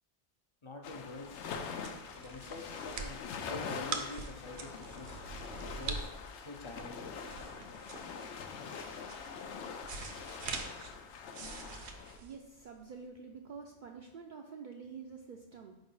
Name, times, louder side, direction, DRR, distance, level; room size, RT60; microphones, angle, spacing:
voice 1, 0.6-1.4 2.2-5.2 5.7-6.1 6.3-7.2, left 2 dB, 35° left, 3 dB, 0.5 m, -46 dB
sound 1, 0.8-12.2, left 6 dB, 85° left, 0.9 m, -44 dB
sound 2, 1.1-13.0, right 4 dB, 75° right, 1.0 m, -44 dB
voice 2, 11.7-15.8, right 5 dB, 60° right, 2 dB, 0.6 m, -48 dB
4.8 x 3.9 x 5.5 m, 0.92 s
omnidirectional pair, 1.2 m